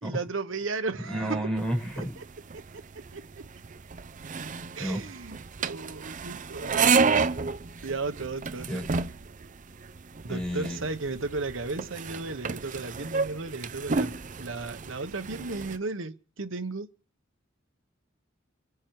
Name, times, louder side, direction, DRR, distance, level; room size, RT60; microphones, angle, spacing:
voice 1, 0.0-1.4 2.0-2.2 2.5-2.8 3.1-3.5 4.7-7.1 7.8-8.9 10.2-16.9, right 3 dB, 80° right, 1.2 m, -35 dB
voice 2, 1.1-2.1 4.8-5.0 8.7-8.8 10.3-10.8, equal, 5° left, 5.5 m, -31 dB
sound 1, 1.6-15.8, right 5 dB, 40° right, 0.6 m, -31 dB
25.0 x 9.8 x 4.8 m
head